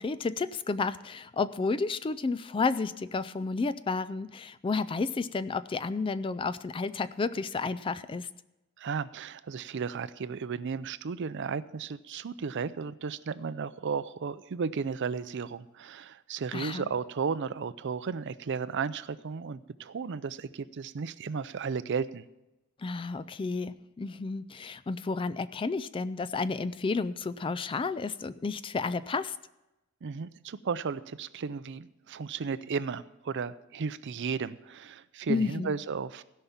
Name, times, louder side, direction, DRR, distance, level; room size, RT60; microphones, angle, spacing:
voice 1, 0.0-8.3 16.5-16.9 22.8-29.4 35.3-35.7, left 4 dB, 25° left, 16 dB, 0.3 m, -31 dB
voice 2, 8.8-22.3 30.0-36.2, right 5 dB, 55° right, 15 dB, 0.5 m, -34 dB
16.5 x 5.6 x 7.1 m, 0.96 s
head